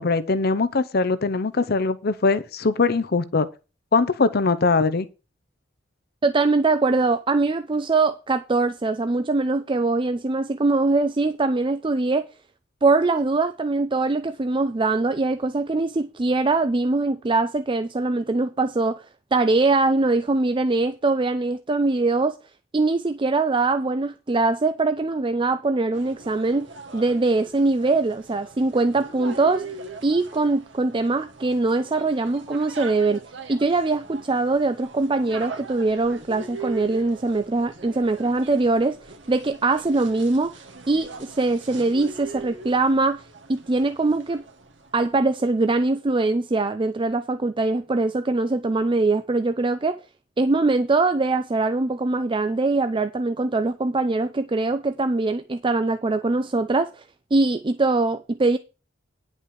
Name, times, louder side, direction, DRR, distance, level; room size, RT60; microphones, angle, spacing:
voice 1, 0.0-3.5 3.9-5.1, left 4 dB, 55° left, 0.8 m, -21 dB
voice 2, 6.2-12.3 12.8-19.0 19.3-22.4 22.7-29.6 30.0-33.2 33.5-39.0 39.3-40.6 40.9-43.2 43.5-44.4 44.9-50.0 50.4-57.0 57.3-58.6, right 3 dB, 25° right, 0.5 m, -22 dB
sound 1, 25.9-45.2, right 3 dB, 70° right, 1.8 m, -41 dB
10.0 x 5.4 x 6.3 m
head